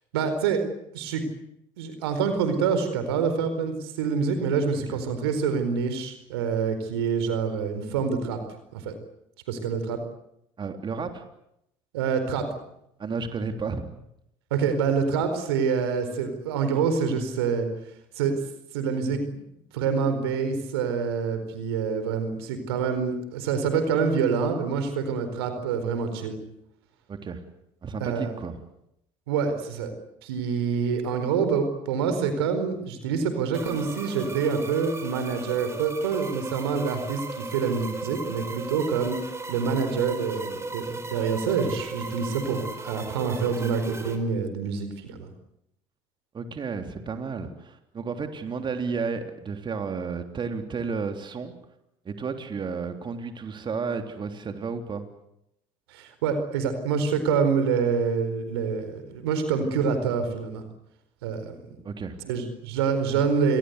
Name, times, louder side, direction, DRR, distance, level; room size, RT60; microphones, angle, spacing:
voice 1, 0.1-0.6 0.9-1.2 1.8-8.4 8.7-8.9 9.5-10.0 11.9-12.5 14.5-17.7 18.2-18.4 18.7-19.4 19.7-26.4 28.0-28.3 29.3-29.9 30.2-39.2 39.5-45.3 55.9-60.6 61.2-61.6 62.2-63.6, right 6 dB, 90° right, 8 dB, 4.4 m, -26 dB
voice 2, 10.6-11.3 13.0-14.0 27.1-27.4 27.8-28.6 46.3-51.5 52.1-55.1 61.8-62.2, right 5 dB, 40° right, 6 dB, 3.5 m, -32 dB
sound 1, 33.5-44.2, right 3 dB, 20° right, 5.3 m, -37 dB
28.0 x 21.5 x 8.2 m, 0.79 s
hypercardioid pair, 75°, 13 cm